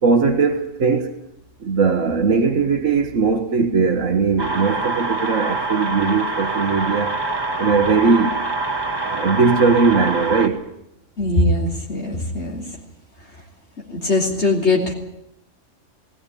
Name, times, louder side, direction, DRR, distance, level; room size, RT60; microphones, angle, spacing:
voice 1, 0.0-1.1 1.6-7.2 7.6-8.3 9.0-10.6, right 4 dB, 75° right, 1.8 m, -19 dB
sound 1, 4.4-10.5, right 3 dB, 20° right, 2.0 m, -25 dB
voice 2, 11.2-12.6 13.9-14.9, left 2 dB, 60° left, 3.8 m, -20 dB
19.5 x 18.0 x 10.0 m
omnidirectional pair, 1.3 m